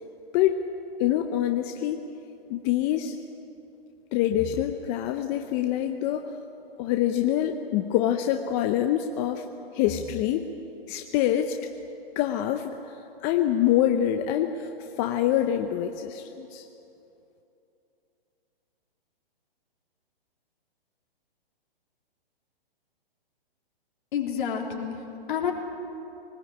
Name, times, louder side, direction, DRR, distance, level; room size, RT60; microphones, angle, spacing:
voice 1, 1.0-2.0 2.5-3.1 4.1-6.2 6.8-9.4 9.7-10.5 10.9-11.6 12.2-12.7 13.2-14.7 15.0-16.6, left 11 dB, 25° left, 6 dB, 0.7 m, -25 dB
voice 2, 24.1-25.5, left 8 dB, 55° left, 1 dB, 3.8 m, -29 dB
23.0 x 19.5 x 8.7 m, 2.9 s
hypercardioid pair, 145°, 30 cm